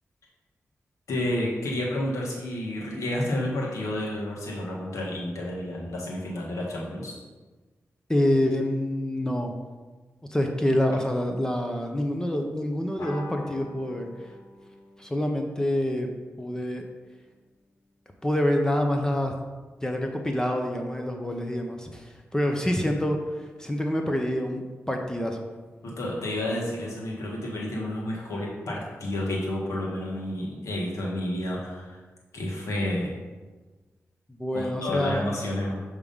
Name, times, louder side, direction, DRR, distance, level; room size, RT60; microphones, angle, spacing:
voice 1, 1.1-7.2 25.8-32.0 32.3-33.2 34.5-35.8, left 1 dB, 85° left, -3 dB, 1.6 m, -30 dB
voice 2, 8.1-9.5 10.3-14.3 15.0-16.1 16.4-16.8 18.2-19.3 19.8-25.5 34.3-35.2, left 1 dB, 10° left, 3 dB, 0.7 m, -27 dB
sound 1, 13.0-17.9, left 1 dB, 65° left, 1.2 m, -46 dB
6.5 x 3.6 x 5.4 m, 1.3 s
cardioid pair, 65°, 5 cm